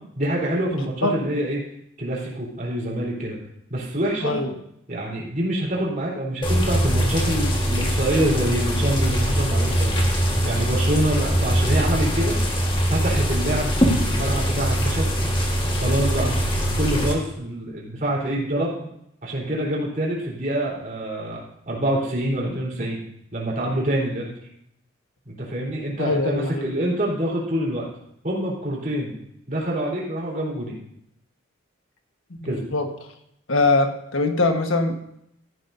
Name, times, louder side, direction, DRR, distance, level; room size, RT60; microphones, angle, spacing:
voice 1, 0.2-1.6 2.0-3.4 3.7-4.4 4.9-10.0 10.4-12.3 12.9-15.1 15.8-16.5 16.8-18.9 19.2-21.4 21.7-23.0 23.3-24.3 25.3-27.9 28.2-29.1 29.5-30.7 32.4-32.6, right 1 dB, 40° right, -4 dB, 3.8 m, -26 dB
voice 2, 0.8-1.2 4.2-4.5 26.0-26.7 32.4-32.9 33.5-35.0, left 2 dB, 85° left, 5 dB, 1.4 m, -22 dB
sound 1, 6.4-17.1, equal, 25° left, 1.6 m, -22 dB
15.0 x 11.0 x 2.7 m, 0.76 s
head